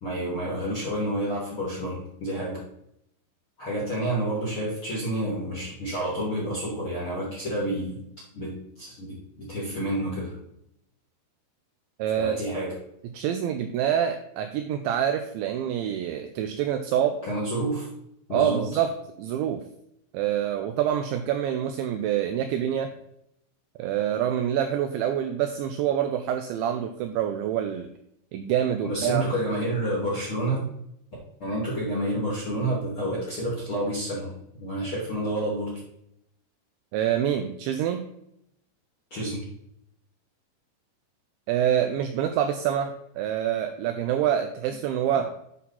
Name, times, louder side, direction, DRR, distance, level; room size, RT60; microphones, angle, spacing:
voice 1, 0.0-2.6 3.6-8.0 8.3-10.3 12.2-12.7 17.2-17.9 18.3-18.7 28.8-30.6 31.4-35.8 39.1-39.4 45.1-45.3, right 1 dB, 50° left, -5 dB, 1.6 m, -29 dB
voice 2, 12.0-12.4 13.1-17.2 18.3-18.9 19.2-19.6 20.1-22.9 23.8-27.9 28.3-29.2 36.9-38.1 41.5-45.3, right 10 dB, 90° right, 7 dB, 2.6 m, -26 dB
9.4 x 5.7 x 4.2 m, 0.77 s
omnidirectional pair, 5.9 m